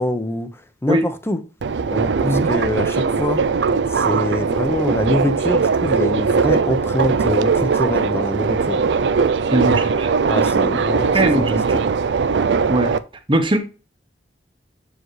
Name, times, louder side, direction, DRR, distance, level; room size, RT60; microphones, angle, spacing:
voice 1, 0.0-1.4 1.9-3.4 3.9-8.8 10.3-11.6, left 1 dB, 15° left, 0.8 m, -24 dB
Subway metro underground, 1.6-13.0, right 5 dB, 80° right, 0.5 m, -20 dB
voice 2, 9.5-10.1 11.1-11.8 12.7-12.9 13.3-13.6, right 1 dB, 30° right, 1.0 m, -19 dB
7.7 x 4.8 x 3.1 m
head